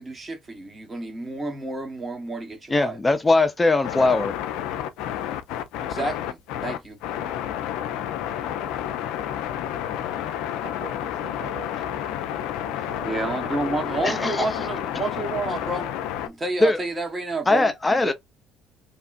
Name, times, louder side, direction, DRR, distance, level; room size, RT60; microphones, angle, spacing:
voice 1, 0.0-3.0 5.8-7.0 13.0-18.1, right 3 dB, 25° right, 1.1 m, -30 dB
voice 2, 2.7-4.4 14.0-14.5 16.6-16.8 17.5-18.1, left 2 dB, 20° left, 0.6 m, -20 dB
sound 1, 3.8-16.3, left 10 dB, 65° left, 0.4 m, -30 dB
voice 3, 10.6-12.0 12.3-14.2, right 9 dB, 65° right, 0.4 m, -43 dB
2.9 x 2.3 x 2.4 m
hypercardioid pair, 60°, 0 cm